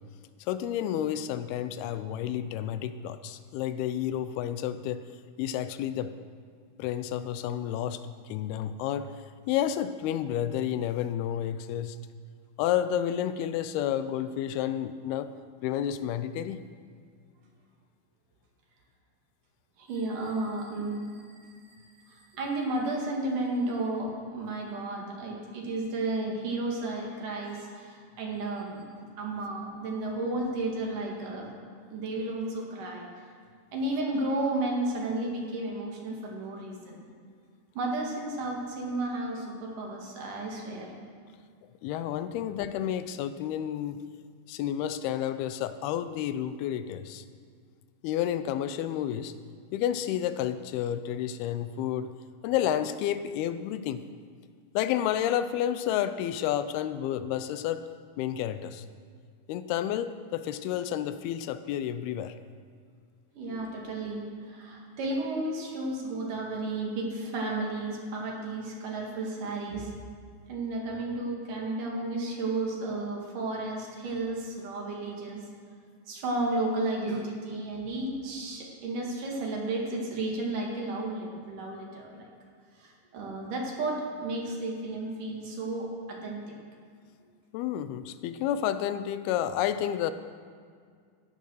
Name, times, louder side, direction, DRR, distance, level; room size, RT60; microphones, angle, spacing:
voice 1, 0.4-5.0 5.4-6.1 6.8-9.1 9.5-12.0 12.6-15.3 15.6-16.6 41.8-44.0 44.5-47.2 48.0-49.3 49.7-52.1 52.4-54.0 54.7-57.9 58.2-58.9 59.5-62.4 87.5-90.1, left 10 dB, 85° left, 12 dB, 2.6 m, -30 dB
voice 2, 19.8-28.8 29.2-31.5 31.9-33.1 33.7-37.0 37.7-40.9 63.4-69.9 70.5-75.4 76.1-82.3 82.8-86.6, right 2 dB, 60° right, -1 dB, 3.5 m, -33 dB
15.5 x 11.0 x 6.4 m, 2.1 s
omnidirectional pair, 4.4 m